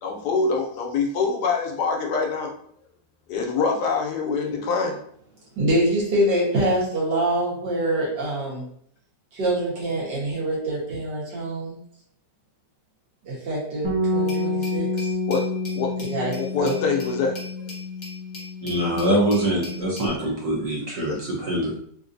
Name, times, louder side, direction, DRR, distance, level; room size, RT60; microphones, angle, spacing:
voice 1, 0.0-2.5 3.3-5.0 15.3-15.4 15.7-15.9 16.2-17.7 21.1-21.2, left 4 dB, 75° left, 1 dB, 1.2 m, -25 dB
voice 2, 5.6-8.6 9.3-11.8 13.3-15.1 16.0-16.3 16.6-17.0, right 1 dB, 75° right, -6 dB, 1.9 m, -25 dB
Bass guitar, 13.8-20.1, left 2 dB, 20° right, 1.1 m, -29 dB
Glass, 14.3-20.2, left 2 dB, 30° left, 0.5 m, -42 dB
voice 3, 18.6-21.7, right 1 dB, 55° right, -4 dB, 1.3 m, -24 dB
3.8 x 2.6 x 2.5 m, 0.64 s
omnidirectional pair, 1.9 m